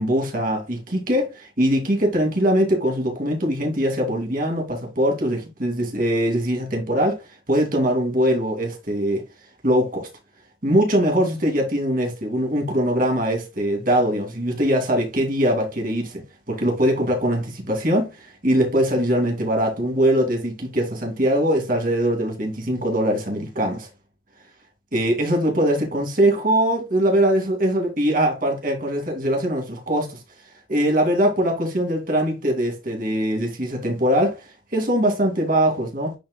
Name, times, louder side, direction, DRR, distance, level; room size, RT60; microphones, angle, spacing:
voice 1, 0.0-9.2 9.6-10.1 10.6-16.2 16.5-23.9 24.9-30.2 30.7-36.1, equal, 45° right, 2.4 m, -22 dB
10.5 x 4.5 x 2.2 m
head